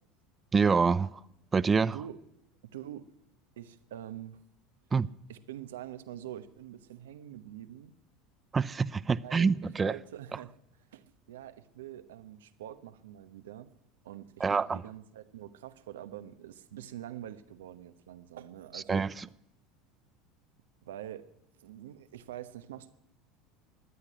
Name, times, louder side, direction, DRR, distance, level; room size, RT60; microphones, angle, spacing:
voice 1, 0.5-1.2 1.5-2.0 4.9-5.1 8.5-10.0 14.4-14.8 18.7-19.2, right 5 dB, 25° right, 0.6 m, -26 dB
voice 2, 2.7-3.1 3.6-4.4 5.3-7.9 9.2-9.5 9.8-10.5 10.9-13.7 14.0-19.0 20.8-21.3 21.6-22.9, right 11 dB, 85° right, 1.0 m, -45 dB
14.0 x 9.9 x 9.8 m
hypercardioid pair, 85°, 0 cm